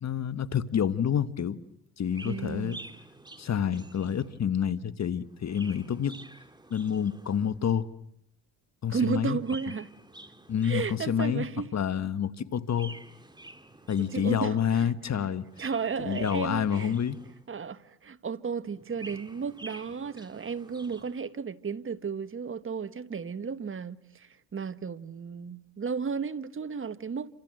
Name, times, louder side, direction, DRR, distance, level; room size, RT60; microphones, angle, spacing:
voice 1, 0.0-1.6 2.0-2.8 3.4-6.2 6.7-7.9 8.8-9.4 10.5-11.5 11.7-12.9 13.9-15.4 16.0-17.2, left 8 dB, 40° left, 1.3 m, -28 dB
Chirp tweet, 2.1-4.5 5.2-7.7 9.2-11.4 12.6-14.5 15.3-17.6 18.7-21.2, right 2 dB, 10° right, 2.1 m, -49 dB
voice 2, 2.2-2.8 8.9-9.9 10.6-11.7 14.0-15.3 15.6-16.9 17.5-27.3, right 5 dB, 30° right, 1.3 m, -34 dB
29.0 x 27.0 x 7.7 m
supercardioid pair, 80°, 41 cm